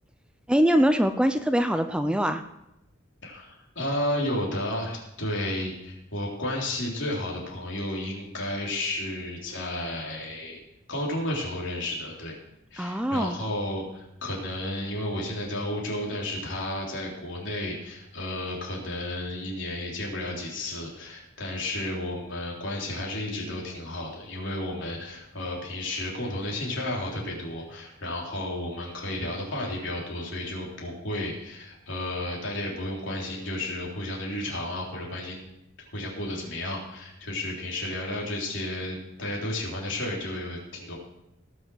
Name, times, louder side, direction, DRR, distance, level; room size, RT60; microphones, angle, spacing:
voice 1, 0.5-2.4 12.8-13.4, equal, 5° right, 8 dB, 0.5 m, -23 dB
voice 2, 3.2-10.6 10.9-12.4 12.7-35.4 35.9-41.0, left 1 dB, 70° left, -2 dB, 3.7 m, -32 dB
18.0 x 6.3 x 6.3 m, 0.85 s
head